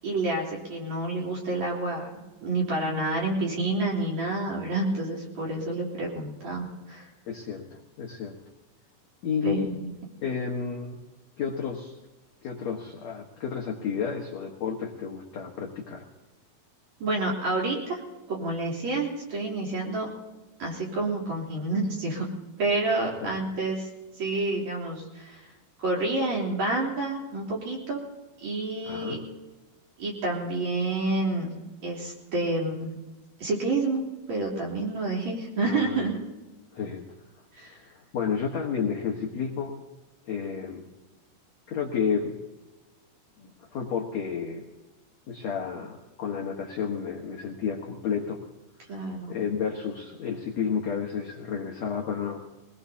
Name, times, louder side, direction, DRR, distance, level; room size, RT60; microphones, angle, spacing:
voice 1, 0.0-7.1 9.4-9.9 17.0-18.0 18.3-20.1 20.6-22.3 22.6-23.9 24.2-25.5 25.8-28.0 28.4-29.2 30.0-32.9 33.4-36.2 37.5-37.8 48.9-49.3, right 2 dB, 40° right, -3 dB, 4.4 m, -29 dB
voice 2, 7.3-8.3 9.2-9.7 10.2-11.0 11.4-12.0 12.4-16.1 23.0-23.4 28.8-29.2 35.6-36.1 36.7-37.1 37.7-39.7 40.2-40.9 41.7-42.3 43.4-44.6 45.3-48.4 49.3-52.4, left 6 dB, 65° left, 0 dB, 1.7 m, -31 dB
23.0 x 20.0 x 2.8 m, 1.1 s
omnidirectional pair, 5.1 m